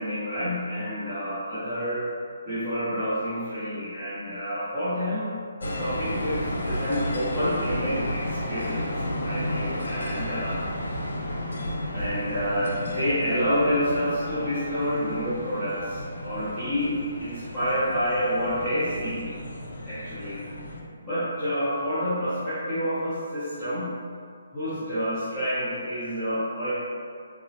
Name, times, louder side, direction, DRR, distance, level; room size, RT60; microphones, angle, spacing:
voice 1, 0.0-2.1 2.4-8.9 9.2-10.6 11.9-19.3 19.9-20.4 21.0-24.0 24.5-26.7, equal, 5° right, -21 dB, 0.7 m, -28 dB
sound 1, 5.6-20.8, left 1 dB, 80° left, 0.4 m, -32 dB
2.8 x 2.3 x 2.7 m, 2.2 s
hypercardioid pair, 175°, 0 cm